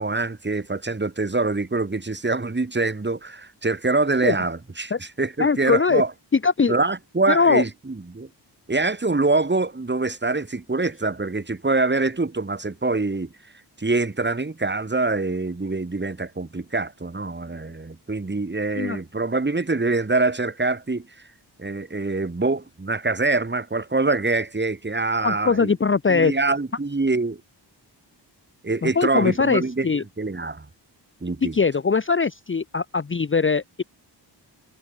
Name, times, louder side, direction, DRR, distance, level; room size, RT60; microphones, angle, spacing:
voice 1, 0.0-6.1 6.7-8.3 8.7-13.3 13.8-21.1 21.6-25.7 26.1-27.4 28.6-30.7 31.2-31.6, right 3 dB, 25° right, 4.8 m, -24 dB
voice 2, 5.4-6.0 6.4-6.7 7.3-7.6 18.8-19.0 25.2-26.3 28.8-30.0 31.4-33.8, left 5 dB, 30° left, 0.8 m, -21 dB
wide cardioid pair, 160°, 42 cm